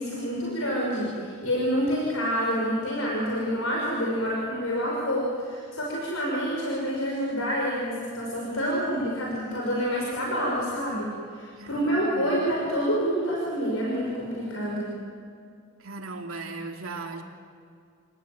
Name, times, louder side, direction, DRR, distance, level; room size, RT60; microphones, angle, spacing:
voice 1, 0.0-14.9, equal, 90° left, -3 dB, 5.5 m, -27 dB
voice 2, 11.6-12.4 15.8-17.2, right 3 dB, 85° right, 3 dB, 3.0 m, -38 dB
28.0 x 18.5 x 9.2 m, 2.3 s
head